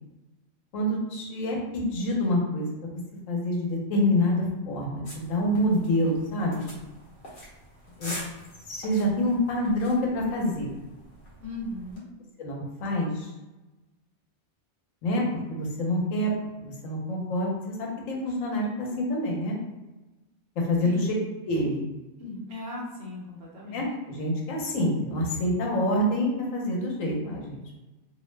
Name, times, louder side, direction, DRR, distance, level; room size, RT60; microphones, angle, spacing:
voice 1, 0.7-2.9 3.3-6.7 8.0-8.1 8.7-10.7 12.4-13.3 15.0-15.2 15.5-16.3 16.6-19.6 20.7-21.1 21.4-21.9 23.7-27.8, left 1 dB, 85° left, -1 dB, 1.1 m, -27 dB
sound 1, 5.0-12.0, equal, 60° left, 1.0 m, -45 dB
voice 2, 11.4-12.1 20.8-21.1 22.2-23.8, left 2 dB, 65° right, -3 dB, 0.9 m, -37 dB
2.6 x 2.0 x 3.1 m, 1.1 s
omnidirectional pair, 1.3 m